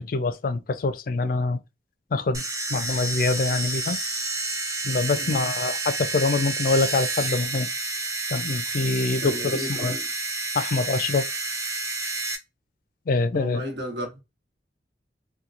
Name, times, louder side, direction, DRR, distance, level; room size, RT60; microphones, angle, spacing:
voice 1, 0.0-1.6 2.1-2.4 2.7-4.0 4.8-7.7 8.3-10.0 10.5-11.3 13.1-13.6, left 3 dB, 50° left, 0.3 m, -25 dB
sound 1, 2.3-12.4, right 3 dB, 20° right, 0.5 m, -30 dB
voice 2, 5.2-5.5 9.2-10.0 13.3-14.2, equal, 70° right, 1.2 m, -33 dB
2.9 x 2.2 x 2.4 m
head